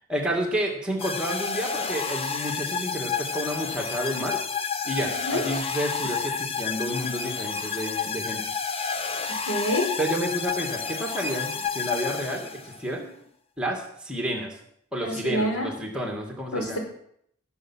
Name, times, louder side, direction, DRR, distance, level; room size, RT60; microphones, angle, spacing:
voice 1, 0.1-4.4 4.8-8.4 10.0-13.1 13.6-14.6 14.9-16.8, equal, 5° right, 0 dB, 2.1 m, -30 dB
sound 1, 1.0-12.8, left 5 dB, 25° left, 0.7 m, -30 dB
voice 2, 9.5-9.9 15.0-15.7 16.5-16.8, equal, 90° left, 2 dB, 3.9 m, -27 dB
17.5 x 7.2 x 6.3 m, 0.69 s
head